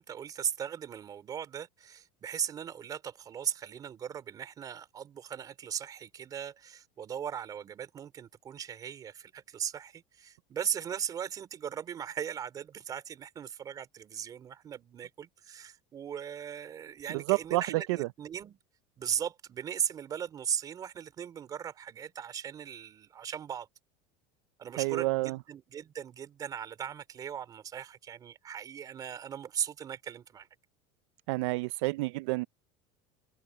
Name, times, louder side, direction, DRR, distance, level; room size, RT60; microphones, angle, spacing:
voice 1, 0.0-18.6 19.0-23.7 24.6-30.5, right 8 dB, 25° right, 3.7 m, -38 dB
voice 2, 17.1-18.1 24.8-25.4 31.3-32.5, right 22 dB, 75° right, 0.4 m, -29 dB
cardioid pair, 165°, 15 cm